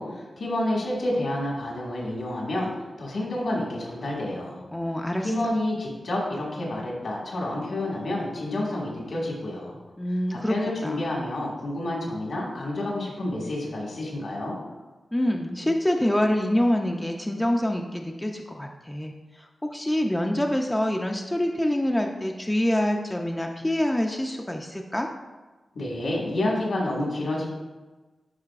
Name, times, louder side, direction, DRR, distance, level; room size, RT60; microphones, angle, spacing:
voice 1, 0.0-2.7 3.0-4.7 5.2-9.8 10.3-14.6 25.8-27.5, left 1 dB, 75° left, -3 dB, 1.8 m, -29 dB
voice 2, 4.7-5.3 10.0-10.6 10.8-11.1 15.1-19.1 19.6-25.1, left 1 dB, 10° left, 2 dB, 0.4 m, -26 dB
11.0 x 3.8 x 2.4 m, 1.2 s
wide cardioid pair, 110°, 0 cm